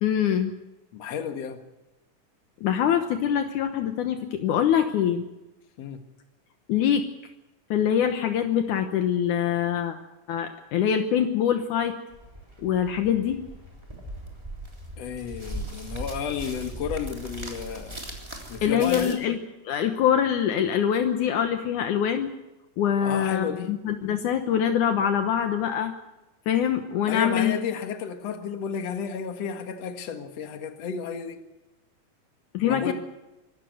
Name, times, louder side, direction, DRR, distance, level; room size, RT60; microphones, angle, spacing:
voice 1, 0.0-0.5 2.6-5.2 6.7-7.1 7.7-10.0 10.3-12.0 12.6-13.4 18.6-19.4 19.7-22.3 22.8-25.9 26.5-27.6 32.5-32.9, left 9 dB, 75° left, 7 dB, 2.5 m, -24 dB
voice 2, 0.9-1.6 5.8-6.0 15.0-18.0 18.5-19.2 23.0-23.7 27.1-31.4 32.6-32.9, left 7 dB, 55° left, 7 dB, 2.6 m, -32 dB
sound 1, 12.1-19.1, right 1 dB, 10° right, 3.1 m, -39 dB
24.5 x 13.5 x 7.9 m, 1.0 s
omnidirectional pair, 3.7 m